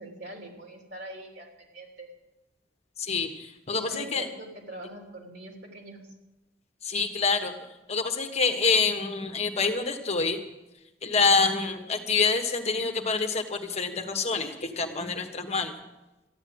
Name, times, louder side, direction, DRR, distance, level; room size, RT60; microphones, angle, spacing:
voice 1, 0.0-2.1 3.7-6.0, right 1 dB, 70° right, 1 dB, 3.1 m, -43 dB
voice 2, 3.0-4.3 6.8-7.5 7.9-10.4 11.0-15.7, left 4 dB, 35° left, 6 dB, 1.3 m, -26 dB
14.0 x 9.9 x 7.9 m, 1.0 s
head